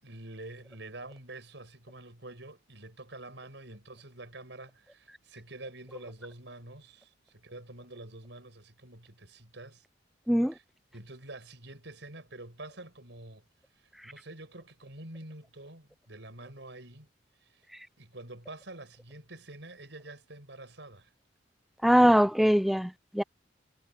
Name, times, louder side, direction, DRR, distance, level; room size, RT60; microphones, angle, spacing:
voice 1, 0.0-9.8 10.5-10.6 10.9-13.4 13.7-17.1 17.4-17.7 18.0-21.1, right 2 dB, 70° right, 7.2 m, -47 dB
voice 2, 21.8-23.2, equal, ahead, 0.4 m, -22 dB
head